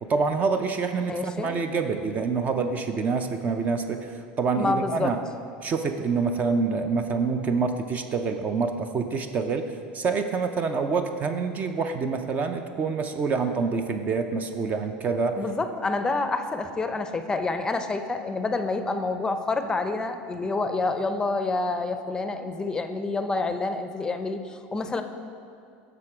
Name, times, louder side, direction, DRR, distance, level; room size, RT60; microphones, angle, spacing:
voice 1, 0.0-5.2 5.6-9.7 9.9-15.4, right 4 dB, 35° right, 7 dB, 0.5 m, -26 dB
voice 2, 1.1-1.5 4.6-5.1 15.4-25.0, left 3 dB, 15° left, 8 dB, 0.5 m, -28 dB
7.6 x 6.0 x 4.8 m, 2.4 s
supercardioid pair, 120°, 5 cm